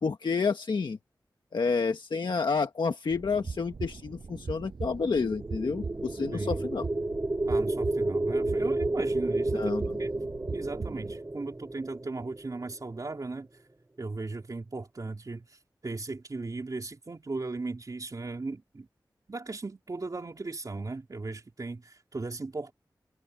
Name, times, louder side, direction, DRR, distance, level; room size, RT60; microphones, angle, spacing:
voice 1, 0.0-1.0 1.5-6.9 9.5-10.0, left 4 dB, 80° left, 1.4 m, -29 dB
sound 1, 3.1-11.2, right 4 dB, 80° right, 7.3 m, -40 dB
sound 2, 5.1-13.2, right 2 dB, 30° right, 4.7 m, -31 dB
voice 2, 6.3-6.7 7.5-10.1 10.5-13.6 14.0-18.9 19.3-22.7, right 3 dB, 50° right, 3.6 m, -37 dB
wide cardioid pair, 75°, 8 cm